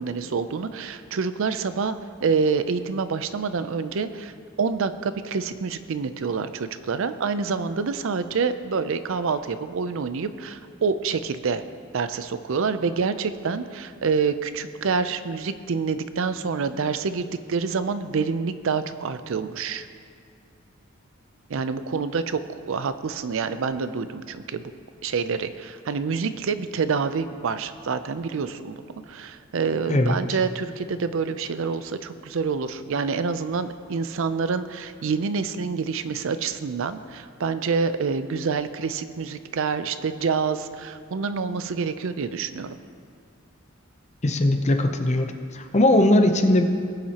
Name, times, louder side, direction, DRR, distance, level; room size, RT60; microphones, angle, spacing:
voice 1, 0.0-11.6 11.9-19.9 21.5-22.4 22.7-24.7 25.0-42.8, right 5 dB, 70° right, 12 dB, 0.5 m, -27 dB
voice 2, 44.2-46.7, left 1 dB, 35° left, 6 dB, 0.7 m, -20 dB
20.0 x 7.3 x 2.9 m, 2.3 s
head